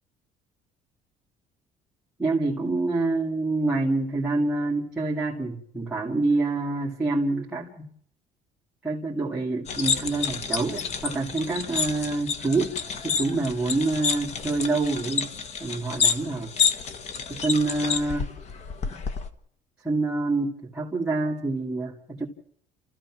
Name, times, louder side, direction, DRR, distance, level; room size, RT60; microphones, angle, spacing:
voice 1, 2.2-7.9 8.8-12.7 13.0-15.3 15.6-16.5 17.3-18.3 18.9-19.0 19.8-22.3, right 2 dB, 5° right, -6 dB, 2.2 m, -26 dB
sound 1, 9.7-19.3, left 6 dB, 45° left, 1.3 m, -29 dB
30.0 x 14.5 x 6.1 m, 0.69 s
cardioid pair, 170°, 16 cm